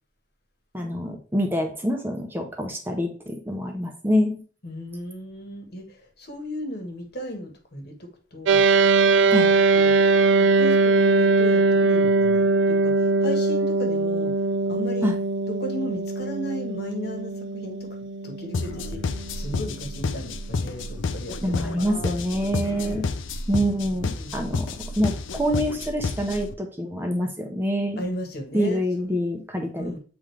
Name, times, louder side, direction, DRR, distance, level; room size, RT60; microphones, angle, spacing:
voice 1, 0.7-4.4 9.3-9.5 15.0-15.1 21.4-23.0 23.5-24.7 25.0-28.0 28.5-29.9, equal, 10° right, 3 dB, 0.7 m, -26 dB
voice 2, 4.6-8.6 9.2-10.0 10.4-15.1 15.5-18.0 18.2-22.2 22.6-23.0 23.9-24.4 28.0-29.1 29.7-30.0, left 1 dB, 55° left, 4 dB, 1.3 m, -36 dB
sound 1, 8.5-20.0, right 3 dB, 70° right, 0.4 m, -21 dB
sound 2, 18.5-26.5, left 3 dB, 80° left, 0.5 m, -30 dB
7.8 x 3.7 x 3.3 m, 0.40 s
head